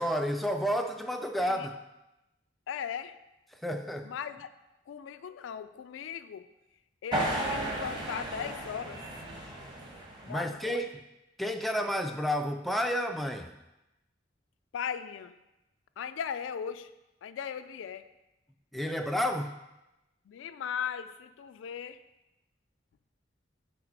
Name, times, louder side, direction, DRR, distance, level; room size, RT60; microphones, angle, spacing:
voice 1, 0.0-1.7 3.6-4.1 10.3-11.0 11.4-13.5 18.7-19.5, equal, ahead, 5 dB, 0.3 m, -30 dB
voice 2, 1.4-1.7 2.7-3.2 4.0-4.5 4.9-6.5 7.0-9.0 10.2-10.9 14.7-15.4 16.0-16.9 17.2-18.0 20.3-22.0, left 8 dB, 90° left, 11 dB, 0.3 m, -38 dB
sound 1, 7.1-10.6, right 1 dB, 25° right, 1.0 m, -34 dB
6.0 x 3.2 x 5.2 m, 0.96 s
head